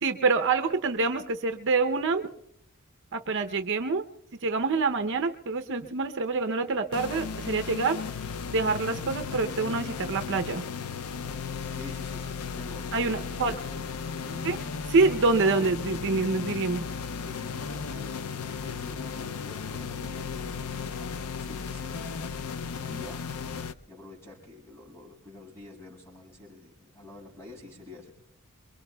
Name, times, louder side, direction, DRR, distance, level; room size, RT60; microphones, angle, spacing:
voice 1, 0.0-2.3 3.1-4.0 4.4-8.0 8.5-10.6 12.9-13.6 14.4-14.6 14.9-16.8, right 3 dB, 55° right, 6 dB, 0.7 m, -26 dB
sound 1, 6.9-23.7, left 5 dB, 75° left, 0.5 m, -35 dB
voice 2, 11.7-14.6 17.2-22.0 22.4-23.2 23.9-28.1, left 2 dB, 10° left, -3 dB, 6.1 m, -48 dB
27.0 x 23.0 x 2.3 m, 0.75 s
head